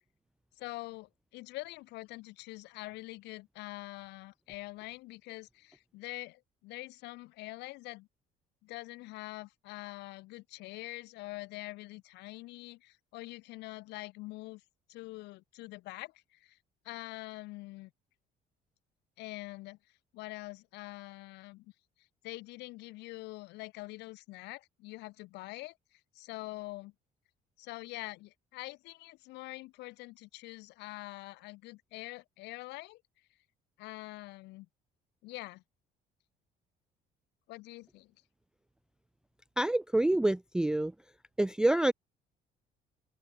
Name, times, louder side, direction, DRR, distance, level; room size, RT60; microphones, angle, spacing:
voice 1, 0.6-8.1 8.6-14.6 14.9-16.6 16.8-17.9 19.2-19.8 20.1-21.7 22.0-26.9 27.6-33.0 33.8-34.7 35.2-35.6 37.5-38.1, left 20 dB, 90° left, 2.5 m, -45 dB
voice 2, 39.6-40.9 41.4-41.9, right 1 dB, 5° right, 0.4 m, -27 dB
open air
cardioid pair, 110°, 17 cm